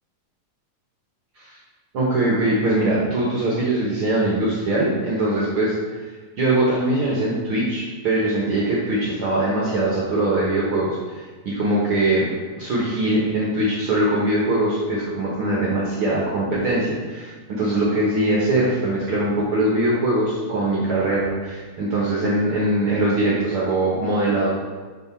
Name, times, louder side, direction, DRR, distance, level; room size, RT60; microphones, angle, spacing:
voice 1, 1.9-5.7 6.0-6.1 6.4-24.5, right 1 dB, 65° right, -5 dB, 1.4 m, -22 dB
7.9 x 3.9 x 4.3 m, 1.4 s
omnidirectional pair, 3.8 m